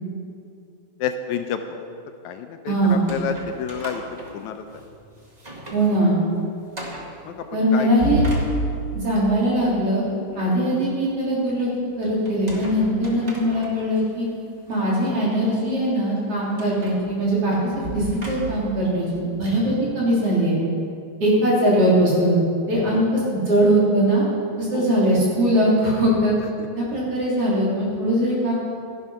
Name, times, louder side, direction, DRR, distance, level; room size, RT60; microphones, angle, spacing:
voice 1, 1.0-1.8 2.2-4.0 4.3-4.6 7.2-7.5 7.7-7.9 10.3-10.6 22.8-23.1 24.7-24.9 26.6-26.7, left 8 dB, 80° left, 7 dB, 1.9 m, -30 dB
voice 2, 2.7-3.0 5.7-6.2 7.5-8.2 8.9-10.0 10.4-11.7 12.0-14.3 14.7-17.6 17.9-19.1 19.4-20.6 21.2-22.4 22.7-24.2 24.6-26.3 26.8-28.5, right 1 dB, 50° right, -6 dB, 4.1 m, -20 dB
sound 1, 2.8-4.9 5.3-5.9 6.2-6.3 6.7-7.1 7.8-9.1 12.2-14.0 14.7-14.8 16.6-18.8, equal, 25° right, 0.8 m, -32 dB
13.0 x 11.0 x 5.7 m, 2.6 s
omnidirectional pair, 3.5 m